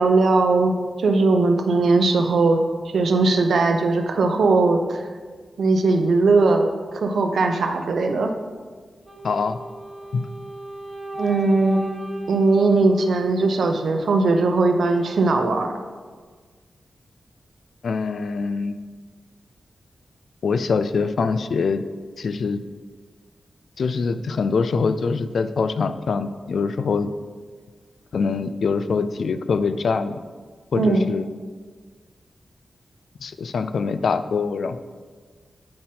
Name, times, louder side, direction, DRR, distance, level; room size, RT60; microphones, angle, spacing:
voice 1, 0.0-5.1 5.6-8.3 11.2-11.8 12.3-15.7 30.8-31.1, right 3 dB, 85° right, 5 dB, 0.6 m, -19 dB
Wind instrument woodwind instrument, 9.0-14.1, right 1 dB, 10° right, 1.3 m, -36 dB
voice 2, 9.2-9.6 10.1-10.3 17.8-18.7 20.4-21.8 22.2-22.6 23.8-27.1 28.1-30.2 30.7-31.3 33.2-34.8, left 5 dB, 75° left, 11 dB, 0.3 m, -24 dB
8.5 x 4.2 x 3.7 m, 1.5 s
wide cardioid pair, 135°, 0 cm